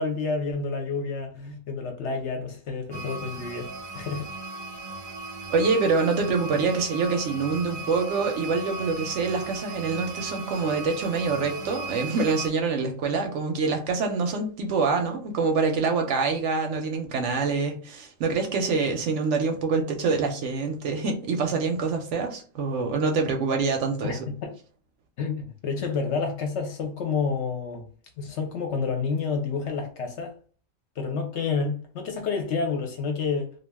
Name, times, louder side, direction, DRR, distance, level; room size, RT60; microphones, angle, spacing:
voice 1, 0.0-4.3 24.0-24.5 25.2-27.8 28.2-30.3 31.0-33.5, left 4 dB, 65° left, 0.8 m, -29 dB
sound 1, 2.9-12.5, right 3 dB, 90° right, 1.1 m, -37 dB
voice 2, 5.5-24.2, right 4 dB, 70° right, 0.8 m, -25 dB
2.3 x 2.2 x 3.3 m
omnidirectional pair, 1.4 m